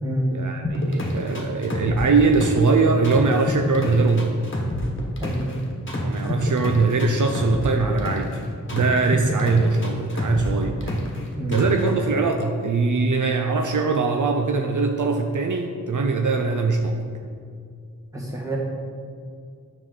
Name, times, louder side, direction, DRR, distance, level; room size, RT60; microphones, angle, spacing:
voice 1, 0.3-4.3 6.0-8.4 8.7-10.9 11.5-17.1, right 4 dB, 65° right, 4 dB, 0.6 m, -21 dB
sound 1, 0.6-2.7 3.0-5.5 5.9-8.4 8.7-11.2 11.5-11.9, left 1 dB, 35° left, 1.4 m, -28 dB
voice 2, 18.1-18.6, right 1 dB, 10° right, -4 dB, 1.9 m, -27 dB
9.1 x 6.4 x 4.0 m, 2.3 s
wide cardioid pair, 80°, 33 cm